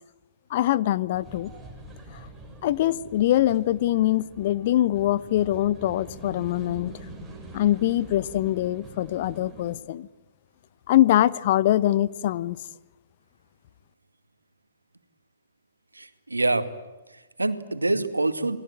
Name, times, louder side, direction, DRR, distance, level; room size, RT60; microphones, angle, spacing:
voice 1, 0.5-1.5 2.6-6.9 7.5-10.1 10.9-12.6, left 13 dB, 45° left, 17 dB, 1.0 m, -23 dB
sound 1, 1.1-9.7, right 2 dB, 5° right, 7.9 m, -45 dB
voice 2, 15.9-16.7 17.1-18.6, right 2 dB, 80° right, 9 dB, 2.2 m, -26 dB
29.0 x 21.5 x 9.0 m, 1.2 s
figure-of-eight pair, 115°, 0 cm